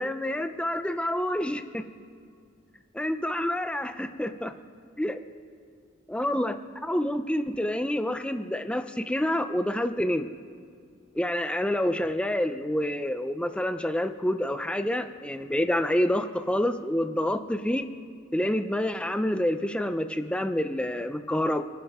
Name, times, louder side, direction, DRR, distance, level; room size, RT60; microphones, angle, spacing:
voice 1, 0.0-1.8 3.0-4.5 5.0-5.2 6.1-10.3 11.1-17.9 18.3-21.6, left 1 dB, 5° left, 8 dB, 0.5 m, -28 dB
28.5 x 11.0 x 3.6 m, 2.3 s
head